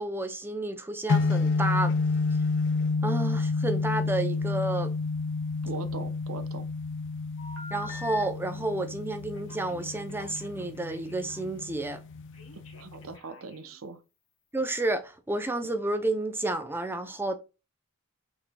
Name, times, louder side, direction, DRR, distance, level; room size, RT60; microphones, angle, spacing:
voice 1, 0.0-2.0 3.0-4.9 7.7-12.0 14.5-17.4, right 2 dB, 10° right, 0.6 m, -30 dB
sound 1, 1.1-13.2, left 4 dB, 60° left, 0.5 m, -30 dB
voice 2, 5.6-6.7 12.7-14.0, right 3 dB, 75° right, 0.7 m, -40 dB
Telephone, 7.4-8.2 9.3-11.5 12.3-13.8, left 2 dB, 85° left, 1.7 m, -46 dB
6.1 x 3.6 x 2.3 m
head